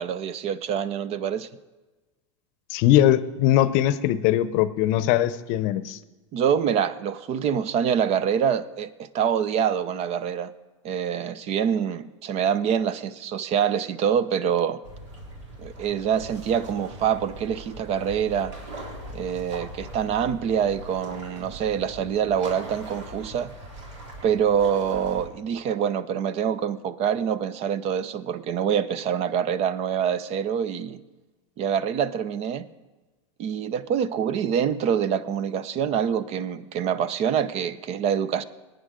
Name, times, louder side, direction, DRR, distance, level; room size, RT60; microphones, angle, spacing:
voice 1, 0.0-1.5 6.3-10.5 10.8-14.8 15.6-18.5 19.1-23.5 24.2-31.0 31.6-32.7 33.4-38.4, right 8 dB, 40° right, 17 dB, 0.6 m, -25 dB
voice 2, 2.7-6.0, left 12 dB, 55° left, 15 dB, 0.7 m, -21 dB
sound 1, 14.8-25.3, right 1 dB, 70° right, 3.5 m, -41 dB
20.5 x 9.4 x 3.7 m, 1.2 s
hypercardioid pair, 105°, 16 cm